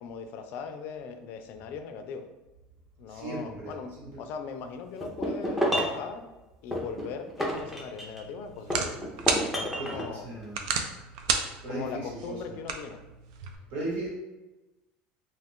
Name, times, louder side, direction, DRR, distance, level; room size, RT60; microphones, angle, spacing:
voice 1, 0.0-2.3 3.0-3.9 4.2-6.3 6.6-9.0 9.5-10.3 11.7-13.0, left 6 dB, 60° left, 7 dB, 0.4 m, -39 dB
voice 2, 3.1-4.1 9.8-10.7 11.6-12.6 13.7-14.1, right 2 dB, 65° right, -4 dB, 1.4 m, -37 dB
sound 1, 5.0-6.0 6.7-8.3 8.7-10.1, equal, 5° right, 0.6 m, -30 dB
sound 2, 7.5-13.6, right 6 dB, 85° right, 0.4 m, -34 dB
2.4 x 2.4 x 3.6 m, 1.1 s
supercardioid pair, 130°, 4 cm